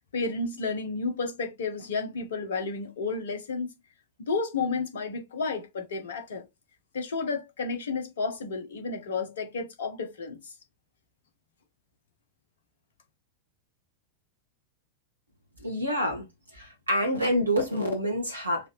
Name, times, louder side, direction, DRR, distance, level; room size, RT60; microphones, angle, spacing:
voice 1, 0.1-3.7 4.2-6.5 6.9-10.5, left 4 dB, 65° left, 1.2 m, -31 dB
voice 2, 15.6-16.3 16.5-18.7, equal, 80° right, 1.3 m, -27 dB
4.6 x 2.8 x 3.1 m
figure-of-eight pair, 90°, 0 cm